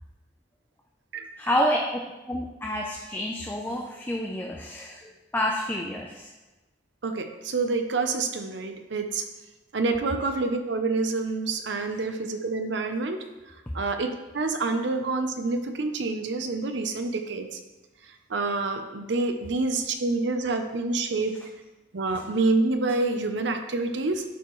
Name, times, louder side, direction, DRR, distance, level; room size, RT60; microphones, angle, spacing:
voice 1, 1.4-6.3, equal, 10° left, 0 dB, 0.5 m, -29 dB
voice 2, 7.0-9.2 9.7-13.2 13.7-17.6 18.3-21.4 21.9-24.2, right 3 dB, 70° right, 6 dB, 0.7 m, -27 dB
11.0 x 4.5 x 3.1 m, 1.2 s
head